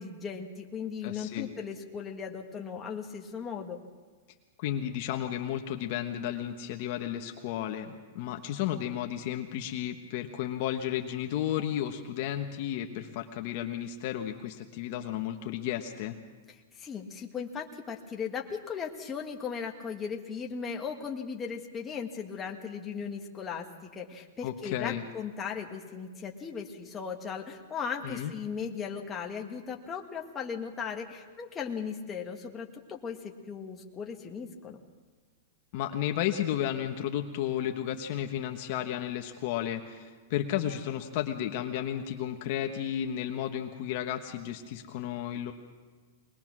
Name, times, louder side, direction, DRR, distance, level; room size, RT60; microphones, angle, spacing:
voice 1, 0.0-3.8 16.7-34.8, left 6 dB, 15° left, 1 dB, 1.6 m, -37 dB
voice 2, 1.0-1.5 4.6-16.2 24.4-25.0 28.0-28.3 35.7-45.5, left 11 dB, 45° left, 4 dB, 1.2 m, -33 dB
22.0 x 20.5 x 6.2 m, 1.5 s
supercardioid pair, 160°, 0 cm